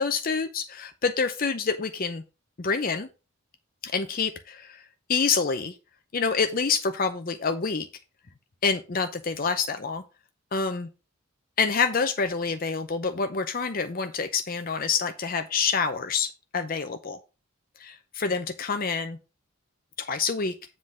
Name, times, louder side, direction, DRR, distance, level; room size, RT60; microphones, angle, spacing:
voice 1, 0.0-2.2 2.6-3.1 3.8-4.8 5.1-5.7 6.1-7.9 8.6-10.0 10.5-10.9 11.6-17.2 17.8-19.2 20.0-20.5, left 5 dB, 40° left, 8 dB, 0.6 m, -27 dB
7.7 x 3.9 x 6.1 m, 0.30 s
head